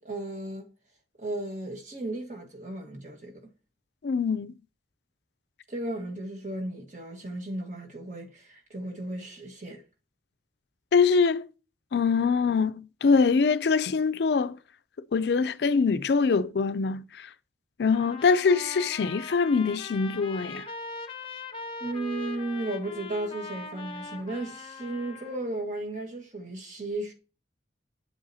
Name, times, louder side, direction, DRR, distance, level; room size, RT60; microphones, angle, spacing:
voice 1, 0.0-0.7 1.2-3.4 5.7-9.8 21.8-27.1, right 1 dB, 45° right, 1.5 m, -35 dB
voice 2, 4.0-4.5 10.9-11.5 11.9-14.6 15.1-17.3 17.8-20.7, left 5 dB, 70° left, 0.4 m, -24 dB
Trumpet, 17.9-25.4, left 3 dB, 30° left, 0.7 m, -41 dB
8.0 x 7.5 x 2.7 m
head